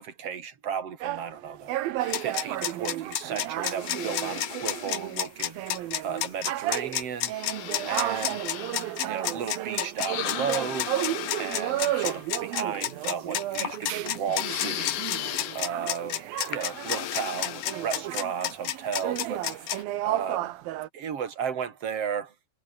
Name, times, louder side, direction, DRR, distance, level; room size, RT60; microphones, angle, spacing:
voice 1, 0.0-1.7 2.2-5.6 6.0-7.3 7.8-8.4 9.1-10.9 11.3-15.0 15.5-19.4 20.0-20.5 20.9-22.3, right 7 dB, 45° right, 3.0 m, -34 dB
sound 1, 1.0-17.0 17.3-20.9, right 14 dB, 90° right, 2.9 m, -33 dB
sound 2, 2.0-19.8, left 12 dB, 70° left, 2.9 m, -31 dB
omnidirectional pair, 4.1 m